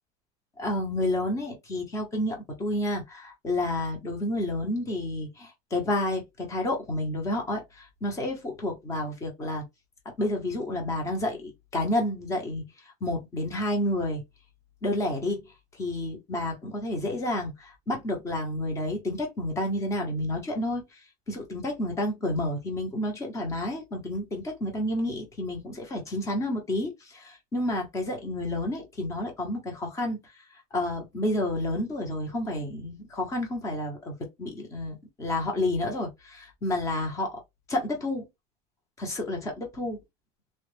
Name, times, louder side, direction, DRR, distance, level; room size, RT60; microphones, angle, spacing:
voice 1, 0.6-9.6 10.2-12.6 13.0-14.2 14.8-15.4 15.8-21.0 21.3-30.2 30.7-37.4 37.7-38.3 39.0-40.0, left 1 dB, 15° left, 0.9 m, -30 dB
3.2 x 2.3 x 3.2 m
cardioid pair, 170°, 20 cm